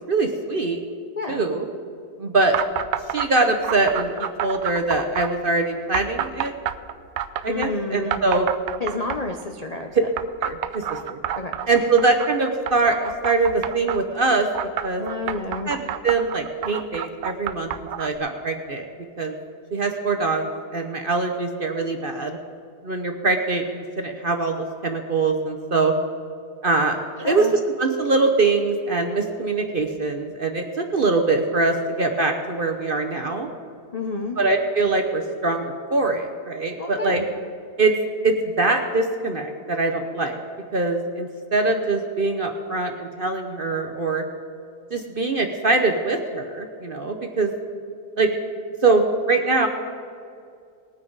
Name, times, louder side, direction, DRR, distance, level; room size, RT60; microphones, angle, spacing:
voice 1, 0.1-0.8 1.3-1.7 2.2-2.6 3.1-6.5 7.4-8.5 10.4-11.2 11.7-14.5 14.8-15.0 15.7-17.7 18.0-18.8 19.2-19.3 19.7-22.4 22.8-25.9 26.6-33.5 34.4-35.6 35.9-37.2 37.8-38.0 38.2-40.4 40.7-44.2 44.9-47.5 48.2-48.3 48.8-49.7, right 3 dB, 45° right, 4 dB, 0.8 m, -23 dB
sound 1, 2.5-3.3 3.6-5.3 5.9-7.7 8.1-9.4 10.2-14.0 14.5-18.2, right 10 dB, 80° right, 0.6 m, -29 dB
voice 2, 7.5-8.2 8.8-9.9 11.4-11.5 15.0-15.7 27.2-27.5 33.9-34.4 36.8-37.3, left 3 dB, 50° left, 3 dB, 0.4 m, -29 dB
20.0 x 9.4 x 4.0 m, 2.3 s
omnidirectional pair, 1.8 m